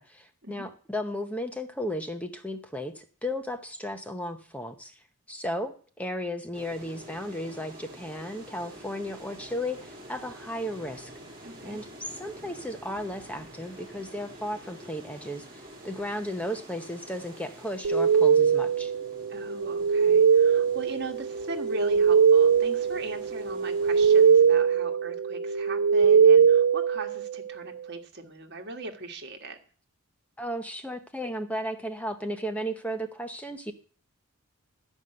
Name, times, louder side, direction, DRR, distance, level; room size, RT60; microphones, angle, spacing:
voice 1, 0.0-4.9 5.3-11.1 11.6-11.9 12.2-18.9 30.4-33.7, equal, 5° left, 7 dB, 0.8 m, -34 dB
sound 1, 6.5-24.7, right 1 dB, 20° right, 3.0 m, -48 dB
voice 2, 11.4-11.8 19.3-29.6, right 2 dB, 50° right, 4 dB, 1.6 m, -39 dB
sound 2, 17.8-27.5, right 6 dB, 70° right, 0.4 m, -21 dB
12.5 x 5.4 x 7.7 m, 0.42 s
head